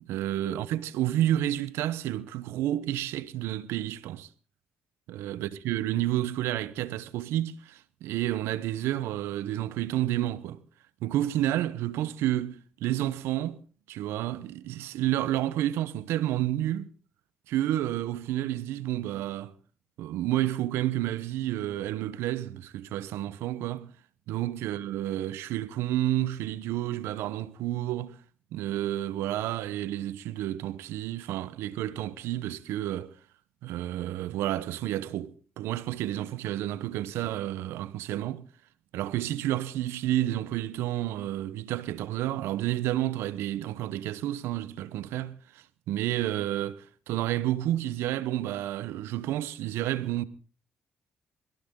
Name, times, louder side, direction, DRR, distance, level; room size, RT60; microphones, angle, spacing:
voice 1, 0.0-4.3 5.1-10.6 11.0-13.6 13.9-16.9 17.5-19.5 20.0-23.9 24.3-28.2 28.5-33.1 33.6-38.5 38.9-50.2, right 13 dB, 90° right, 1.0 m, -30 dB
22.0 x 16.0 x 3.8 m
cardioid pair, 75°, 4 cm